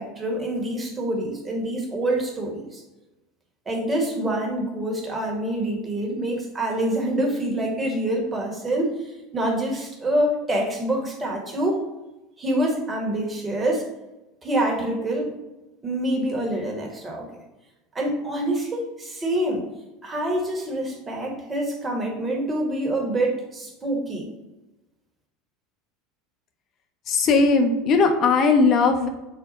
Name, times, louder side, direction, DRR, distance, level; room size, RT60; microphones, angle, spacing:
voice 1, 0.0-2.8 3.7-11.8 12.4-13.8 14.4-15.3 15.8-17.3 17.9-19.6 20.0-24.3, right 1 dB, 25° right, 0 dB, 1.2 m, -26 dB
voice 2, 27.1-29.1, left 4 dB, 45° left, 5 dB, 0.7 m, -18 dB
5.7 x 2.1 x 4.0 m, 1.0 s
hypercardioid pair, 75°, 0 cm